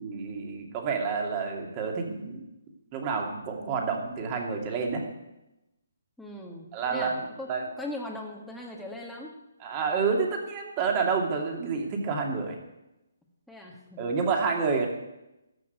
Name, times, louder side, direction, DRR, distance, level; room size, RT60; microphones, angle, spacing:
voice 1, 0.0-2.4 2.9-5.0 6.7-7.7 9.6-12.6 14.0-14.9, right 5 dB, 30° right, 1 dB, 2.6 m, -29 dB
voice 2, 6.2-7.5 7.8-9.3 13.5-14.0, left 1 dB, ahead, -2 dB, 1.6 m, -40 dB
14.0 x 6.1 x 9.4 m, 0.94 s
hypercardioid pair, 150°, 0 cm